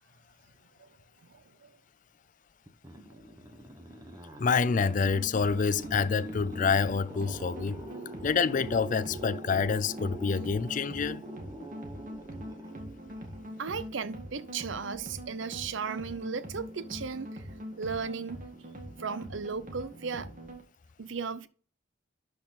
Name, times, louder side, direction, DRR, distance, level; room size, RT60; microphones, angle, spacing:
voice 1, 1.3-1.7 13.6-17.4 17.8-18.5 19.0-20.3 21.0-21.5, right 5 dB, 65° right, 0.6 m, -36 dB
sound 1, 2.7-13.8, right 1 dB, 15° right, 1.1 m, -45 dB
voice 2, 4.4-7.8 8.2-11.2, left 5 dB, 40° left, 0.4 m, -27 dB
sound 2, 4.8-20.6, equal, 40° right, 1.8 m, -43 dB
11.5 x 4.3 x 3.9 m
head